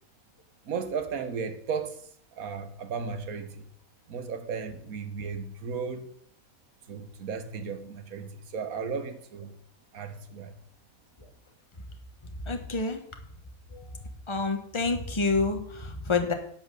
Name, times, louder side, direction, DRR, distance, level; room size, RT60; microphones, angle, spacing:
voice 1, 0.6-3.7 4.1-6.1 6.9-9.6 9.9-10.6, right 5 dB, 80° right, 1.6 m, -35 dB
voice 2, 12.4-13.0 13.7-13.9 14.3-16.3, left 3 dB, 20° left, 1.2 m, -28 dB
11.0 x 6.0 x 6.6 m
omnidirectional pair, 1.5 m